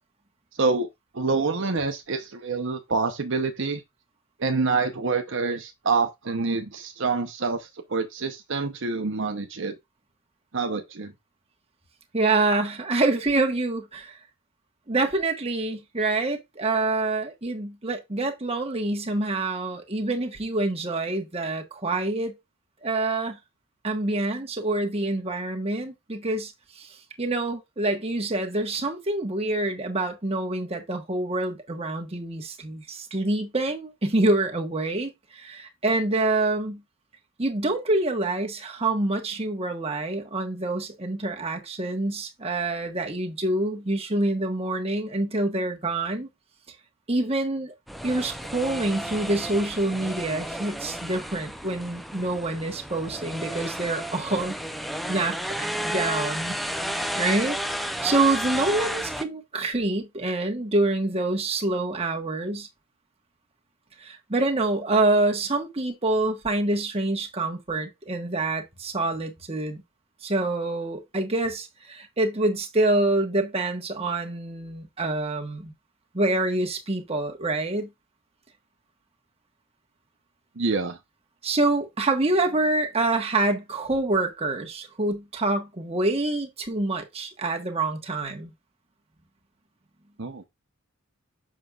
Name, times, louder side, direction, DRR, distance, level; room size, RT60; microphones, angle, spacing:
voice 1, 0.6-0.9 1.1-3.8 4.4-9.7 10.5-11.1 80.6-81.0 90.2-90.4, right 4 dB, 55° right, 0.8 m, -26 dB
voice 2, 12.1-14.2 14.9-22.3 22.8-23.4 23.8-36.8 37.4-46.3 47.1-47.7 48.0-54.5 55.1-56.8 57.1-62.7 64.0-69.8 70.2-75.7 76.1-77.9 81.4-88.5, right 2 dB, 30° right, 1.4 m, -26 dB
sound 1, 47.9-59.2, equal, ahead, 0.6 m, -32 dB
7.4 x 6.2 x 2.4 m
head